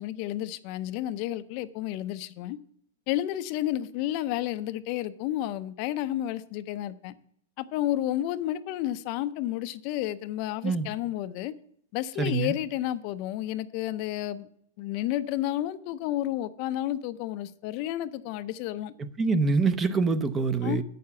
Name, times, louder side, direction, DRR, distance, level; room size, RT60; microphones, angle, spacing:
voice 1, 0.0-2.6 3.1-7.1 7.6-11.5 11.9-14.5 14.8-18.9 20.6-20.8, left 13 dB, 40° left, 0.5 m, -31 dB
voice 2, 12.2-12.6 19.0-20.8, right 4 dB, 15° right, 0.6 m, -25 dB
8.5 x 6.7 x 7.0 m
hypercardioid pair, 145°, 0 cm